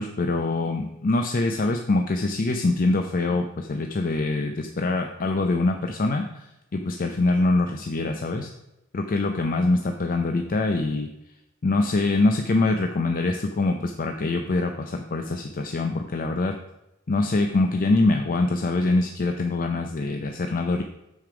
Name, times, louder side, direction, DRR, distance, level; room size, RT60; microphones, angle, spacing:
voice 1, 0.0-8.5 8.9-11.1 11.6-16.6 17.1-20.8, left 2 dB, 40° left, 5 dB, 0.5 m, -24 dB
6.9 x 6.4 x 4.8 m, 0.90 s
head